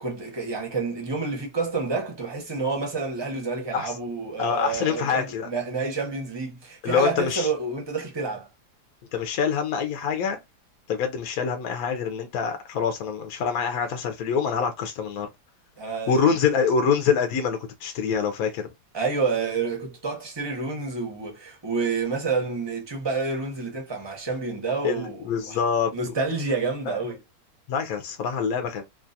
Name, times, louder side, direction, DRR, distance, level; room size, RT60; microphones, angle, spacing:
voice 1, 0.0-8.5 15.8-16.3 18.9-25.6 25.9-27.2, right 4 dB, 25° right, 0.6 m, -29 dB
voice 2, 4.4-5.5 6.8-7.5 9.1-10.4 10.9-15.3 16.1-18.7 24.8-25.9 27.7-28.8, left 6 dB, 65° left, 1.0 m, -25 dB
3.0 x 2.3 x 2.6 m
omnidirectional pair, 1.8 m